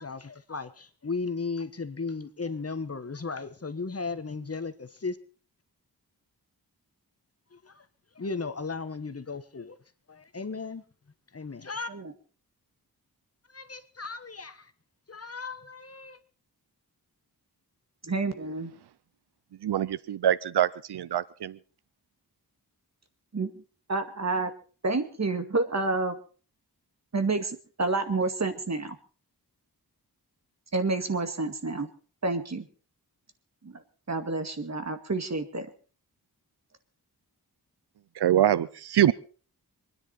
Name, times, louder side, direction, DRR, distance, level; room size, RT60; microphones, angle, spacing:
voice 1, 0.0-5.2 7.5-7.8 8.1-9.8 10.1-10.8 11.3-11.9 13.5-14.7 15.1-16.2, left 4 dB, 40° left, 1.4 m, -36 dB
voice 2, 18.0-18.7 23.3-23.5 23.9-24.5 24.8-26.2 27.1-29.0 30.7-31.9 32.2-32.7 33.6-33.8 34.1-35.7, right 3 dB, 45° right, 2.0 m, -29 dB
voice 3, 19.6-21.6 38.2-39.1, right 11 dB, 85° right, 0.6 m, -24 dB
26.0 x 10.0 x 4.1 m
wide cardioid pair, 85°, 38 cm